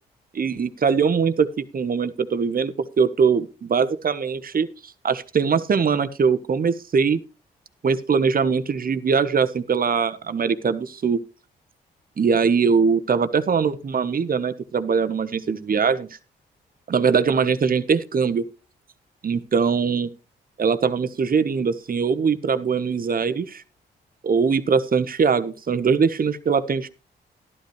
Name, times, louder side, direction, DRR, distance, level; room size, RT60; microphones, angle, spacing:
voice 1, 0.3-4.7 5.0-7.2 7.8-11.2 12.2-16.2 16.9-18.4 19.2-20.1 20.6-23.6 24.2-26.9, right 5 dB, 45° right, 12 dB, 1.1 m, -21 dB
12.5 x 11.5 x 3.2 m, 0.32 s
hypercardioid pair, 45°, 20 cm